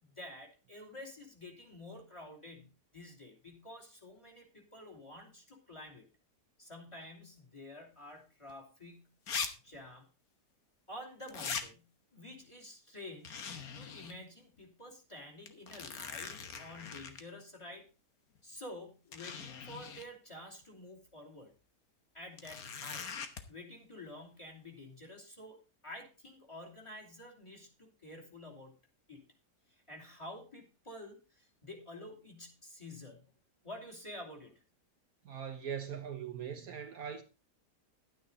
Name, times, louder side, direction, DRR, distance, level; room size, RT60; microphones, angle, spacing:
voice 1, 0.0-6.1 6.6-9.1 9.6-10.0 10.9-13.4 13.7-17.9 18.4-21.5 22.1-23.1 23.5-28.7 29.1-29.2 29.7-33.3 33.6-34.6, left 1 dB, 15° left, 3.0 m, -49 dB
sound 1, 8.5-8.6 9.3-9.5 9.7-9.8 11.3-11.7 13.2-14.1 14.6-14.7 15.5-17.2 18.4-18.5 19.1-20.1 22.4-23.4, left 6 dB, 60° left, 1.6 m, -41 dB
voice 2, 35.2-37.2, right 8 dB, 60° right, 1.3 m, -41 dB
11.5 x 9.5 x 4.0 m
omnidirectional pair, 1.8 m